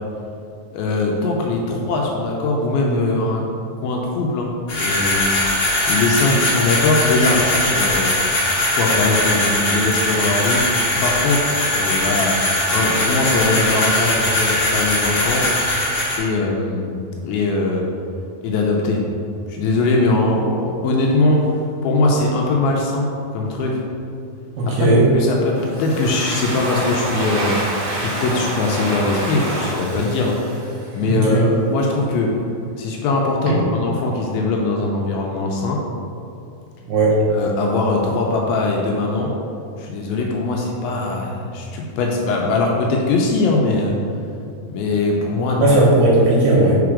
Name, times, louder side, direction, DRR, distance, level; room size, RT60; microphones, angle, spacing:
voice 1, 0.7-3.4 3.8-5.3 5.9-8.1 8.8-10.6 11.0-12.3 12.7-15.4 16.2-16.9 17.2-17.9 18.4-19.0 19.5-23.1 23.3-23.8 24.7-27.6 27.9-30.7 30.9-32.3 32.8-35.8 37.3-39.3 39.8-43.9 44.7-45.7, left 2 dB, 80° left, -1 dB, 2.3 m, -21 dB
sound 1, 4.7-16.2, left 1 dB, 45° left, 1.4 m, -20 dB
voice 2, 24.6-25.0 31.0-31.5 33.5-33.6 36.9-37.2 45.6-46.8, right 2 dB, 75° right, -4 dB, 2.8 m, -16 dB
Domestic sounds home sounds, 25.6-31.2, right 1 dB, 60° right, 2.5 m, -27 dB
5.0 x 4.8 x 4.8 m, 2.5 s
omnidirectional pair, 4.5 m